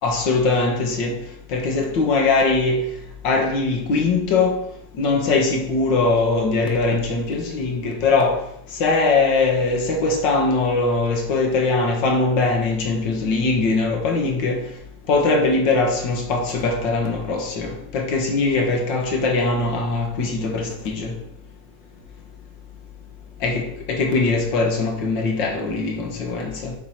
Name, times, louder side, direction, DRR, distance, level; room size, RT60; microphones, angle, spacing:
voice 1, 0.0-1.2 1.5-2.8 3.2-4.6 5.0-8.4 8.8-14.6 15.1-21.1 23.4-26.7, left 3 dB, 85° left, 2.0 m, -21 dB
5.9 x 4.7 x 5.6 m
omnidirectional pair, 1.9 m